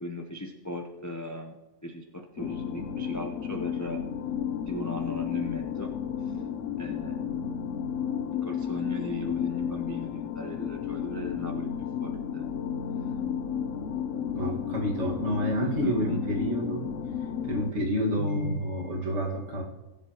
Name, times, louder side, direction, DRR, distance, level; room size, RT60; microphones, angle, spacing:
voice 1, 0.0-4.0 4.7-5.9 6.8-7.4 8.4-11.7 12.0-12.5 13.7-14.0 15.6-16.2, left 1 dB, 20° left, 3 dB, 0.5 m, -38 dB
sound 1, 2.4-17.7, left 8 dB, 70° left, 0.9 m, -32 dB
voice 2, 14.3-16.9 17.4-19.6, equal, 55° right, -2 dB, 2.2 m, -29 dB
19.0 x 7.6 x 3.0 m, 1.0 s
omnidirectional pair, 1.4 m